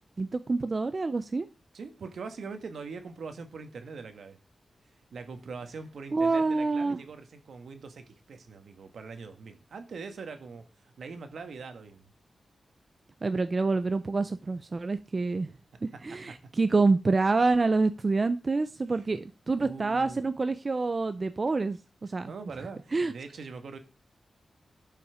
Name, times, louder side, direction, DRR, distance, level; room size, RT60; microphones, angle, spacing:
voice 1, 0.2-1.5 6.1-7.0 13.2-15.5 15.8-22.3 22.9-23.1, right 3 dB, 30° right, 0.5 m, -27 dB
voice 2, 1.7-4.4 5.1-12.1 18.9-19.0 19.6-20.2 22.2-23.8, right 4 dB, 70° right, 1.6 m, -42 dB
11.5 x 5.8 x 5.0 m
wide cardioid pair, 145°, 0 cm